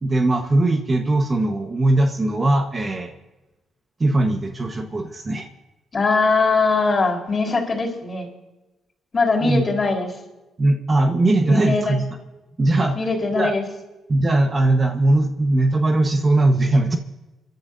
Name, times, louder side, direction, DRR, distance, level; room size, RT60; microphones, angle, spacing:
voice 1, 0.0-3.1 4.0-5.5 9.4-9.6 10.6-12.0 12.6-13.0 13.3-13.5 14.1-17.0, right 2 dB, 30° right, 4 dB, 1.3 m, -19 dB
voice 2, 5.9-8.3 9.1-10.2 11.4-11.9 12.9-13.6, left 3 dB, 35° left, 1 dB, 4.2 m, -21 dB
27.5 x 12.0 x 2.7 m, 1.1 s
cardioid pair, 90°, 0 cm